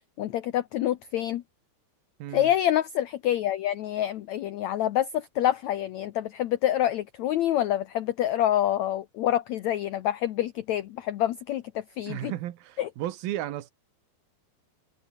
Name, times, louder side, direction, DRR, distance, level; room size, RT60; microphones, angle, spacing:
voice 1, 0.2-1.4 2.3-12.3 12.8-12.9, left 12 dB, 90° left, 1.6 m, -27 dB
voice 2, 2.2-2.5 12.1-13.7, right 13 dB, 75° right, 3.0 m, -34 dB
omnidirectional pair, 4.4 m